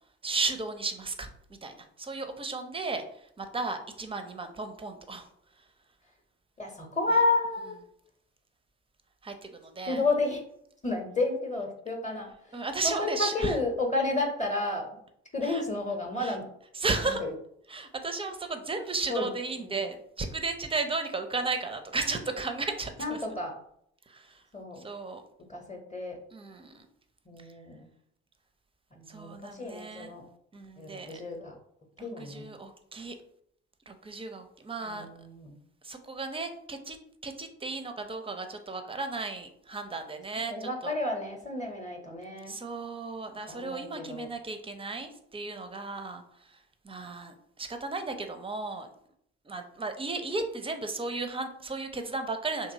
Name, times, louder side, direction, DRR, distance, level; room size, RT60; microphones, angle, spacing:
voice 1, 0.2-1.3 1.6-5.3 9.2-10.0 12.5-13.6 15.4-15.6 16.2-16.4 16.7-17.2 17.7-23.2 24.1-24.4 24.8-25.2 26.3-26.9 27.4-27.5 29.1-30.2 30.5-31.2 32.0-33.2 33.9-35.1 35.8-37.0 37.2-40.9 42.5-48.9 49.4-52.7, right 3 dB, 15° right, 7 dB, 0.4 m, -35 dB
voice 2, 6.6-7.8 9.8-10.4 10.8-15.0 15.3-16.4 17.0-17.3 19.1-19.3 19.6-19.7 23.0-23.5 24.5-24.8 25.5-26.2 27.3-27.9 28.9-30.2 30.8-31.5 32.0-32.5 34.8-35.6 40.5-42.5 43.5-44.3, left 2 dB, 20° left, 3 dB, 0.7 m, -31 dB
2.8 x 2.6 x 2.6 m, 0.70 s
figure-of-eight pair, 45°, 33 cm